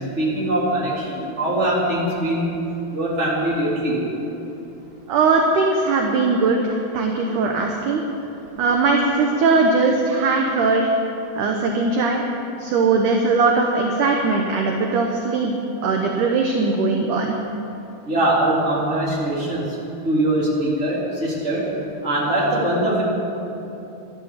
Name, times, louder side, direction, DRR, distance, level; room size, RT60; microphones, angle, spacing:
voice 1, 0.0-2.6 2.9-4.0 18.0-19.8 20.0-21.7 22.0-23.0, right 1 dB, 15° right, -6 dB, 3.6 m, -22 dB
voice 2, 5.1-8.0 8.6-10.9 11.4-12.2 12.6-15.6 15.8-17.4, right 3 dB, 70° right, 1 dB, 2.1 m, -20 dB
14.0 x 12.5 x 7.5 m, 3.0 s
omnidirectional pair, 4.6 m